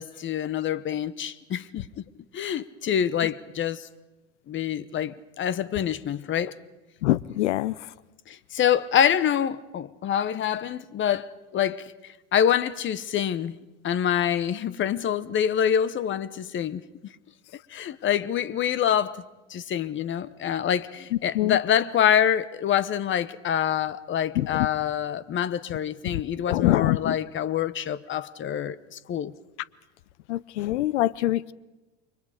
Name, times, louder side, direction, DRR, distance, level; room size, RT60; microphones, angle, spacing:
voice 1, 0.0-1.8 2.3-3.9 4.5-6.5 8.3-11.9 12.3-13.6 13.8-16.8 17.7-19.2 19.5-29.3, left 9 dB, 35° left, 1.0 m, -26 dB
voice 2, 7.0-7.8 21.3-21.6 24.4-24.7 26.1-26.2 26.5-27.2 30.3-31.5, left 15 dB, 75° left, 0.8 m, -24 dB
29.5 x 23.0 x 5.1 m
hypercardioid pair, 90°, 35 cm